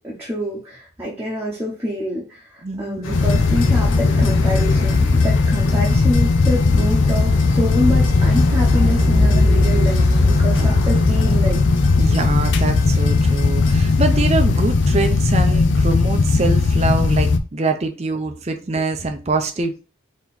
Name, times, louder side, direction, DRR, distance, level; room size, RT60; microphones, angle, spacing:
voice 1, 0.0-11.7, left 1 dB, 10° right, -5 dB, 0.9 m, -26 dB
voice 2, 2.6-3.2 10.5-11.0 12.0-19.8, right 3 dB, 30° right, 5 dB, 0.6 m, -24 dB
sound 1, 3.0-15.1, left 1 dB, 85° left, 0.9 m, -24 dB
sound 2, 3.1-17.4, left 3 dB, 65° left, 0.5 m, -17 dB
3.8 x 3.0 x 4.2 m, 0.33 s
head